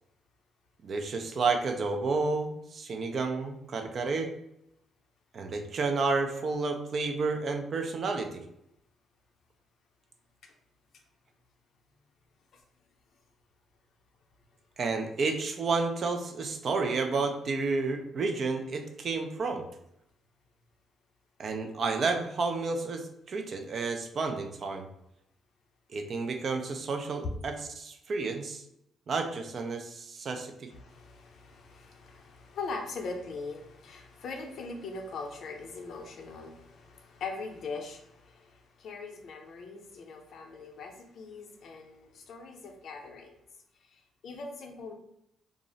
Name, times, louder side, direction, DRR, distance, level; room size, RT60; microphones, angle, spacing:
voice 1, 0.8-4.3 5.3-8.4 14.8-19.7 21.4-24.9 25.9-28.6 29.1-30.7, right 4 dB, 50° right, 5 dB, 0.4 m, -31 dB
voice 2, 30.7-43.3 43.9-44.9, left 4 dB, 65° left, 2 dB, 0.5 m, -41 dB
2.4 x 2.0 x 3.8 m, 0.79 s
cardioid pair, 90°, 0 cm